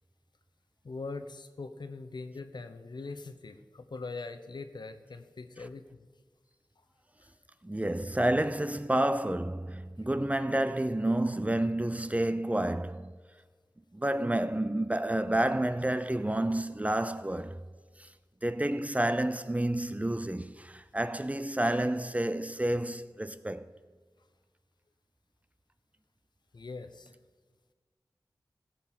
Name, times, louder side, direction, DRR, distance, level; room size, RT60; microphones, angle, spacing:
voice 1, 0.8-6.1 26.5-27.2, left 3 dB, 70° left, 0.9 m, -42 dB
voice 2, 7.6-13.2 13.9-17.6 18.0-18.1 18.4-23.7, right 1 dB, 20° right, 0.6 m, -29 dB
15.5 x 5.9 x 7.5 m
cardioid pair, 40°, 8 cm